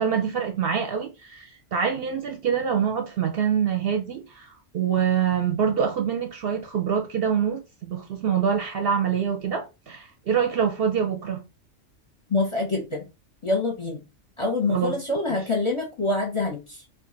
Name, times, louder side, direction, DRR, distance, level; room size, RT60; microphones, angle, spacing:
voice 1, 0.0-11.4 14.7-14.9, right 7 dB, 60° right, 0.7 m, -25 dB
voice 2, 12.3-13.0 13.4-14.0 14.4-16.8, left 2 dB, 30° left, 0.7 m, -26 dB
2.5 x 2.3 x 3.7 m
omnidirectional pair, 1.3 m